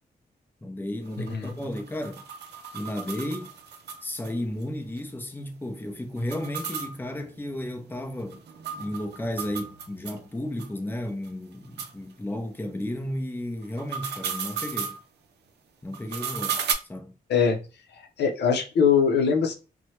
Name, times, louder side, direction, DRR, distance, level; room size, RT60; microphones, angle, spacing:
voice 1, 0.6-2.3 2.7-3.5 4.0-8.4 8.8-15.0 15.8-16.6 16.9-17.1, left 1 dB, 10° left, 0.6 m, -33 dB
sound 1, 1.1-4.3 4.6-4.7 5.0-5.1 6.2-10.2 10.6-10.7 11.2-11.3 11.8-11.9 13.6-15.0 15.9-16.7, right 7 dB, 85° right, 0.4 m, -34 dB
voice 2, 17.3-17.6 18.2-19.5, left 6 dB, 85° left, 0.6 m, -21 dB
2.8 x 2.2 x 3.1 m
cardioid pair, 75°, 17 cm